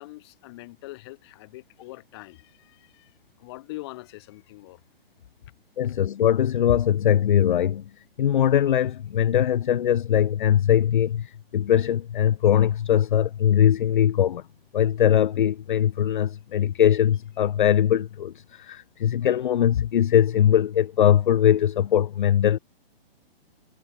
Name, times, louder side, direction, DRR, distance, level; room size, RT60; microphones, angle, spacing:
voice 1, 0.0-4.8, left 20 dB, 25° left, 3.3 m, -43 dB
voice 2, 5.8-7.9 8.2-14.4 14.7-22.6, left 10 dB, 50° left, 0.5 m, -21 dB
hypercardioid pair, 170°, 31 cm